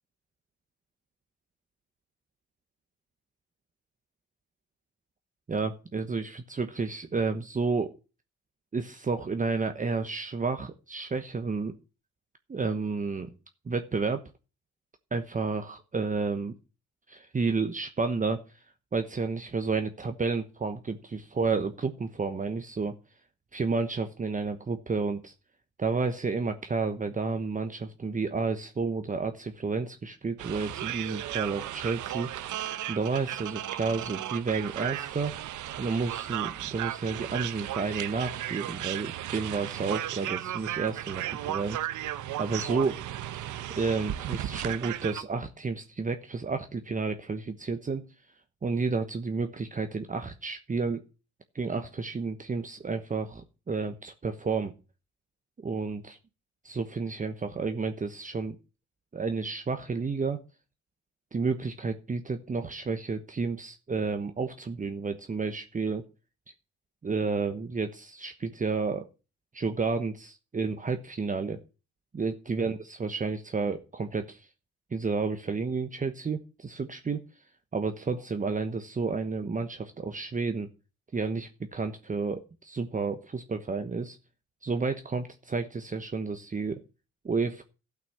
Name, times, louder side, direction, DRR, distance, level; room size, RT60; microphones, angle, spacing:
voice 1, 5.5-7.9 8.7-11.7 12.5-13.3 13.7-14.2 15.1-16.5 17.1-18.6 18.9-22.9 23.5-25.3 25.8-32.3 32.9-35.3 35.8-41.8 42.4-43.0 43.7-48.0 48.6-51.0 51.5-54.7 55.6-56.2 56.6-58.6 59.1-60.4 61.3-66.0 67.0-69.1 69.5-71.6 72.1-74.5 74.9-77.2 77.7-80.7 81.1-84.2 84.6-86.8 87.2-87.6, right 4 dB, 25° right, 7 dB, 1.0 m, -31 dB
sound 1, 30.4-45.2, right 12 dB, 80° right, 0.9 m, -35 dB
12.5 x 6.0 x 7.7 m, 0.33 s
cardioid pair, 90°, 30 cm